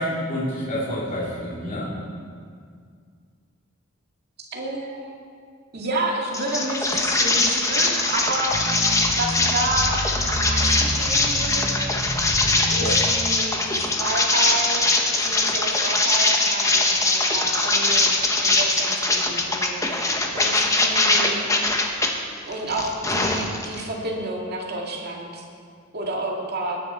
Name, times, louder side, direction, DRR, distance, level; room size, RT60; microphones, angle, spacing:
voice 1, 0.0-1.9 12.8-13.0 23.1-23.4, equal, 40° left, -8 dB, 2.8 m, -28 dB
voice 2, 4.5-5.2 5.7-8.5 9.1-10.0 10.3-11.7 12.7-21.4 22.4-25.4 25.9-26.8, right 2 dB, 50° right, -1 dB, 2.2 m, -30 dB
sound 1, 6.3-22.1 22.5-23.8, left 2 dB, 15° left, 1.2 m, -22 dB
sound 2, 8.5-13.1, equal, 70° left, 2.9 m, -29 dB
21.5 x 9.7 x 4.4 m, 2.1 s
head